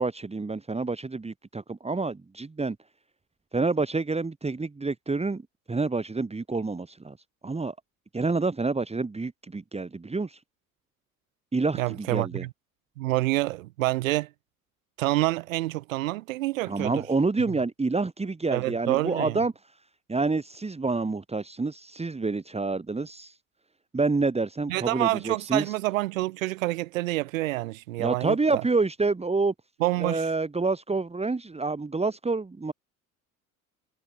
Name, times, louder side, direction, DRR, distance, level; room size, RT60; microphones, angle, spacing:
voice 1, 0.0-2.8 3.5-5.4 5.7-7.1 7.4-7.7 8.1-10.4 11.5-12.4 16.7-19.5 20.1-23.3 23.9-25.7 28.0-29.5 30.0-32.7, right 3 dB, 15° right, 2.9 m, -28 dB
voice 2, 11.8-12.5 13.0-14.3 15.0-17.0 18.5-19.4 24.7-28.6 29.8-30.3, right 18 dB, 70° right, 1.8 m, -27 dB
figure-of-eight pair, 65°, 41 cm